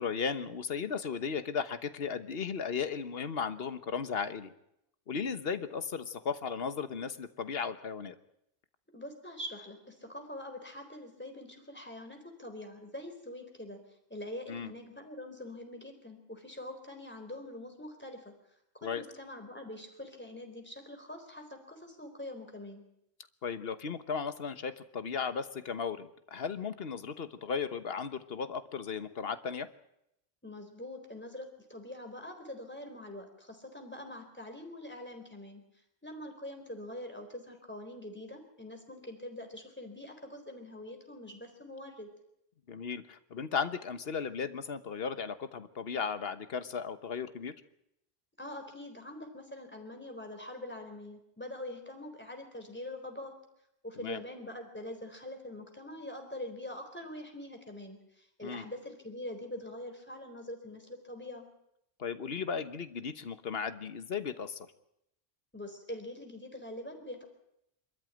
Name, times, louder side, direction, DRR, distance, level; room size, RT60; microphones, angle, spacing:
voice 1, 0.0-4.5 5.1-8.1 14.5-14.7 18.8-19.0 23.4-29.7 42.7-47.5 54.0-54.2 58.4-58.6 62.0-64.7, left 6 dB, 75° left, 11 dB, 1.4 m, -36 dB
voice 2, 8.9-13.8 14.1-18.3 18.8-22.8 30.4-35.6 36.0-42.1 48.4-53.3 53.8-61.5 65.5-67.2, left 1 dB, 10° left, 4 dB, 4.0 m, -44 dB
24.5 x 14.0 x 9.2 m, 0.79 s
omnidirectional pair, 1.0 m